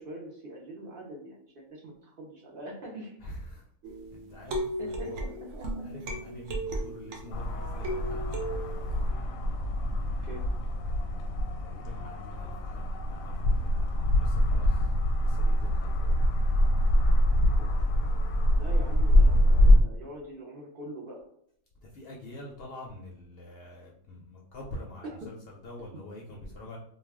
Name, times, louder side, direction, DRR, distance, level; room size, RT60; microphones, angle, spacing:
voice 1, 0.0-3.2 4.8-5.9 10.2-10.5 17.6-17.7 18.5-21.3, right 1 dB, 55° right, -2 dB, 0.7 m, -43 dB
voice 2, 3.2-3.7 4.1-5.2 5.8-8.4 11.6-14.9 15.2-16.2 21.8-26.8, left 1 dB, 60° left, -1 dB, 0.6 m, -45 dB
sound 1, 3.8-7.4 7.8-9.1, right 1 dB, 75° right, 1.0 m, -35 dB
sound 2, 7.3-19.8, left 1 dB, 85° left, 1.0 m, -24 dB
2.3 x 2.2 x 3.4 m, 0.66 s
omnidirectional pair, 1.4 m